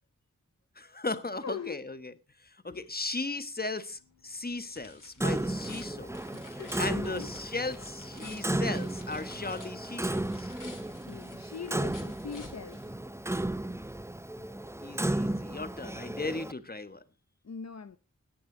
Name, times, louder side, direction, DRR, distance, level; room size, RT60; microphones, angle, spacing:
voice 1, 0.8-2.1 2.4-10.5 14.8-17.0, left 3 dB, 30° left, 1.2 m, -37 dB
voice 2, 1.4-1.8 6.5-7.3 11.1-12.8 17.4-18.0, left 6 dB, 60° left, 0.7 m, -41 dB
sound 1, 3.9-13.4, left 3 dB, 85° left, 3.4 m, -52 dB
Clock, 5.2-16.5, right 1 dB, 10° right, 0.5 m, -34 dB
17.0 x 10.5 x 3.8 m
wide cardioid pair, 60°, 31 cm